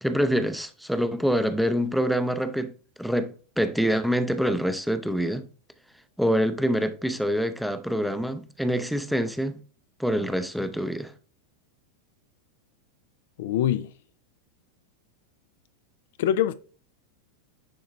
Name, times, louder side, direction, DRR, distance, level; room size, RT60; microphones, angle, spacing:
voice 1, 0.0-5.5 6.2-9.6 10.0-11.1, equal, ahead, 0.6 m, -26 dB
voice 2, 13.4-13.9 16.2-16.5, left 10 dB, 55° left, 0.4 m, -23 dB
10.5 x 3.8 x 2.6 m
figure-of-eight pair, 90°, 0 cm